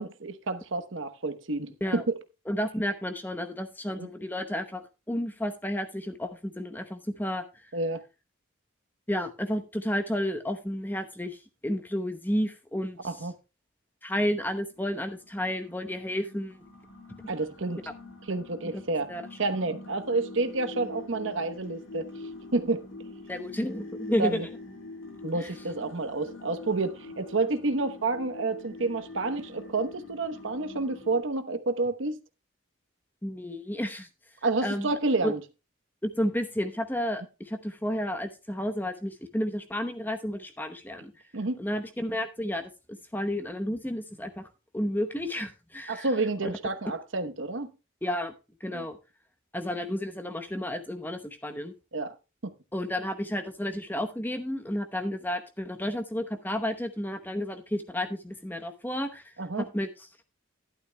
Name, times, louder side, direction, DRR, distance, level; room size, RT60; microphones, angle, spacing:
voice 1, 0.0-2.1 4.0-4.1 7.7-8.0 13.0-13.3 17.3-17.8 18.3-19.1 19.4-22.1 22.5-22.8 24.2-24.5 25.2-32.2 34.4-35.4 41.3-41.6 45.9-47.7 48.7-48.9 51.9-52.1 52.4-52.5 59.4-59.7, right 3 dB, 70° right, 1.0 m, -29 dB
voice 2, 2.5-7.4 9.1-13.0 14.0-16.6 19.1-19.2 23.3-24.5 25.4-25.5 33.2-34.1 34.6-34.9 35.2-35.3 36.0-41.1 41.6-42.7 43.1-44.5 44.7-46.1 46.4-46.5 48.0-48.3 48.6-49.0 49.5-51.7 52.7-59.2 59.6-59.9, equal, 10° left, 0.9 m, -31 dB
sound 1, 14.6-31.2, left 2 dB, 70° left, 4.0 m, -45 dB
12.5 x 11.5 x 2.2 m
head